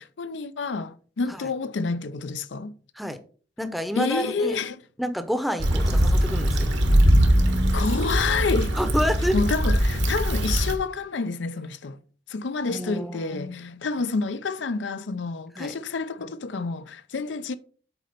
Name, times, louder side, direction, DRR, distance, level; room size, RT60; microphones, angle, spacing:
voice 1, 0.0-2.8 4.0-4.8 7.7-8.8 9.3-12.0 12.3-17.6, left 4 dB, 75° left, 0.5 m, -28 dB
voice 2, 3.6-4.6 5.0-6.7 8.8-9.4 12.7-13.3 15.6-15.7, equal, ahead, 0.7 m, -28 dB
Stream / Traffic noise roadway noise / Trickle dribble, 5.6-10.7, equal, 70° right, 1.4 m, -21 dB
8.0 x 4.2 x 5.1 m
head